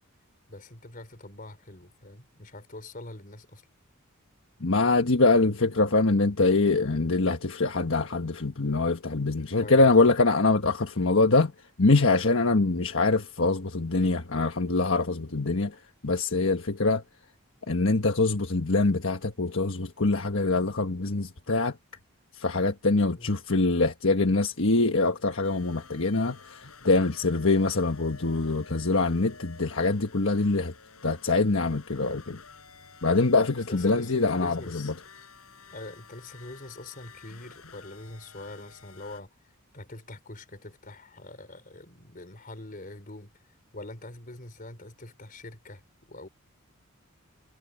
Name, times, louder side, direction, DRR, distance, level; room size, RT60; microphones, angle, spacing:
voice 1, 0.5-3.6 9.6-10.0 23.1-23.4 33.7-34.9 35.7-39.3 39.7-43.3 43.7-45.8 46.1-46.3, left 2 dB, 40° left, 4.3 m, -43 dB
voice 2, 4.6-11.5 11.8-15.8 16.0-17.0 17.7-21.7 22.3-30.7 31.0-32.4 33.0-34.9, left 3 dB, 65° left, 1.4 m, -24 dB
sound 1, 25.4-39.2, left 5 dB, 85° left, 5.5 m, -51 dB
head